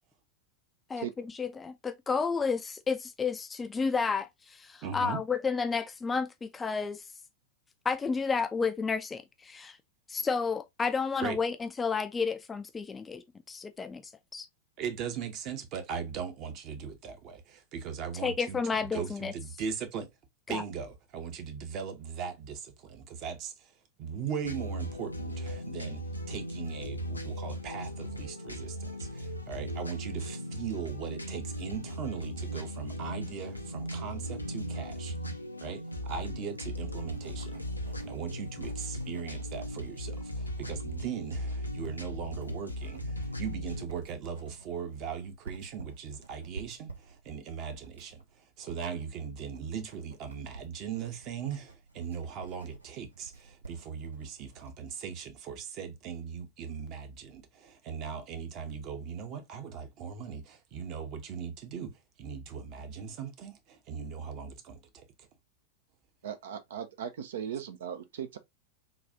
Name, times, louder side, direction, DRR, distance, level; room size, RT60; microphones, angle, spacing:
voice 1, 0.9-7.0 7.9-9.8 10.1-14.5 18.2-19.3 20.5-20.6, left 5 dB, 15° left, 0.3 m, -31 dB
voice 2, 4.8-5.2 11.2-11.4 14.8-18.6 18.9-20.1 20.5-35.2 35.6-65.1, right 7 dB, 40° right, 0.8 m, -39 dB
sound 1, 24.4-43.9, equal, 85° left, 0.5 m, -38 dB
Writing, 36.2-54.8, right 4 dB, 80° right, 0.8 m, -51 dB
voice 3, 66.2-68.4, right 9 dB, 60° right, 0.4 m, -38 dB
3.9 x 2.3 x 2.7 m
figure-of-eight pair, 90°, 0 cm